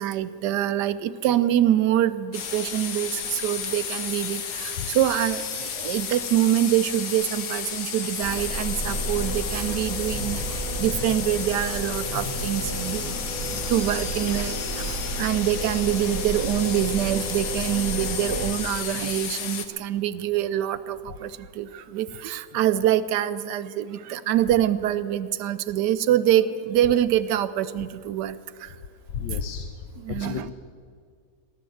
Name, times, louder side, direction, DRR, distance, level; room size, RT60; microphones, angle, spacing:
voice 1, 0.0-13.2 13.5-28.7 30.0-30.5, right 12 dB, 75° right, 12 dB, 1.2 m, -25 dB
sound 1, 2.3-19.7, left 7 dB, 70° left, 1.6 m, -33 dB
sound 2, 8.2-18.5, right 1 dB, 35° left, 4.9 m, -32 dB
voice 2, 29.1-29.7 30.1-30.5, left 7 dB, 90° left, 8 dB, 1.4 m, -31 dB
16.0 x 11.0 x 7.8 m, 2.1 s
omnidirectional pair, 1.9 m